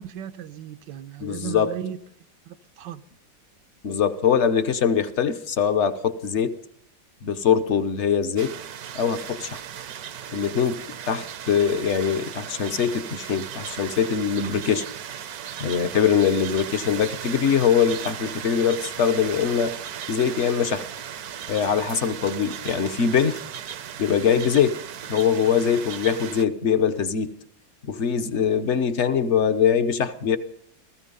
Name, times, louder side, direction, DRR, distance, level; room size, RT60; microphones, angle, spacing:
voice 1, 0.0-2.0 2.5-3.0, right 10 dB, 80° right, 1.5 m, -36 dB
voice 2, 1.2-1.7 3.8-6.6 7.2-8.5 8.9-9.6 10.3-14.8 15.6-19.8 20.1-20.9 21.5-23.4 24.0-24.8 25.1-27.3 27.9-30.4, left 7 dB, 50° left, 1.0 m, -22 dB
sound 1, 8.4-26.4, right 9 dB, 65° right, 1.1 m, -36 dB
17.5 x 15.0 x 5.5 m
omnidirectional pair, 2.0 m